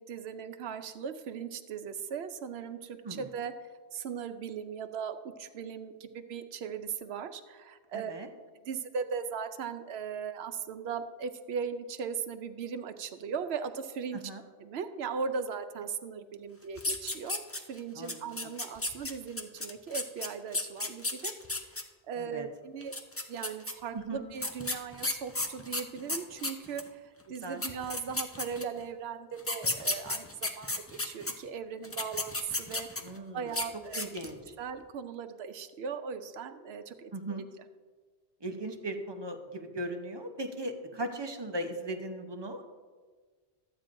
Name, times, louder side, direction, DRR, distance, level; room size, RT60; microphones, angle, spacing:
voice 1, 0.0-3.5 3.9-8.1 8.6-14.2 14.6-21.3 22.1-22.9 23.3-27.0 27.3-30.3 30.6-32.9 33.3-34.1 34.6-37.4, right 6 dB, 70° right, 9 dB, 0.9 m, -38 dB
voice 2, 7.9-8.3 14.1-14.4 17.9-18.5 22.1-22.5 23.9-24.2 27.4-27.6 33.0-33.6 33.9-34.5 37.1-37.4 38.4-42.7, right 1 dB, 25° right, 5 dB, 0.6 m, -38 dB
sound 1, 16.8-17.8 18.1-21.8 22.8-23.7 24.4-26.9 27.3-27.4 27.6-28.8 29.4-31.3 31.8-33.2 33.5-33.7 33.9-34.4, left 2 dB, 20° left, 0.4 m, -33 dB
13.5 x 8.9 x 2.6 m, 1.4 s
omnidirectional pair, 1.1 m